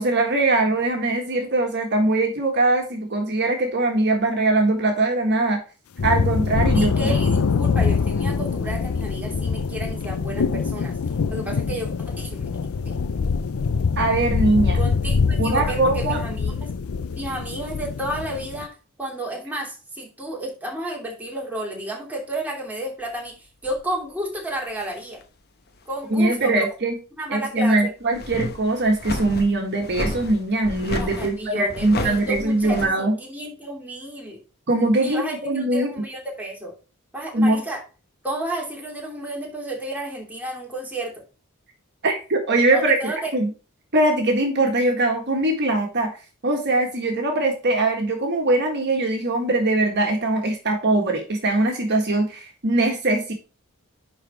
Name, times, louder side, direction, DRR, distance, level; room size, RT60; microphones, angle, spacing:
voice 1, 0.0-5.6 6.0-7.1 14.0-14.8 15.4-16.2 26.1-27.0 27.3-33.1 34.7-35.9 37.3-37.6 42.0-43.5 43.9-46.1 46.4-53.3, right 2 dB, 55° right, 3 dB, 1.6 m, -21 dB
sound 1, 6.0-18.7, left 5 dB, 80° left, 0.5 m, -24 dB
voice 2, 6.7-10.9 11.3-12.4 12.8-13.0 14.7-16.7 17.2-18.7 19.0-23.3 23.6-25.2 25.9-26.6 27.2-27.9 31.0-34.4 35.0-36.7 37.1-37.8 38.2-41.1 42.7-43.3, right 1 dB, 10° right, -2 dB, 2.8 m, -31 dB
sound 2, 23.6-23.8 24.7-25.2 25.7-25.8 28.0-32.9, left 1 dB, 50° left, 1.0 m, -32 dB
10.0 x 4.1 x 4.4 m, 0.34 s
head